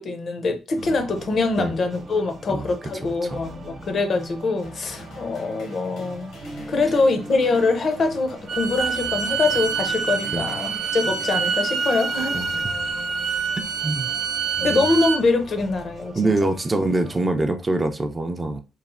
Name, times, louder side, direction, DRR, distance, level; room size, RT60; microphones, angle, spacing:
voice 1, 0.0-6.3 6.7-12.4 14.6-16.5, left 3 dB, 50° left, 0.5 m, -24 dB
sound 1, 0.7-17.2, right 1 dB, 50° right, 0.8 m, -42 dB
voice 2, 3.0-3.5 10.3-10.5 12.3-12.5 13.8-14.1 14.6-15.0 16.2-18.6, right 2 dB, 25° right, 0.4 m, -24 dB
sound 2, 4.6-13.2, left 2 dB, 75° left, 0.8 m, -44 dB
Bowed string instrument, 8.5-15.2, right 6 dB, 80° right, 0.7 m, -26 dB
3.0 x 2.0 x 2.4 m
cardioid pair, 90°, 0 cm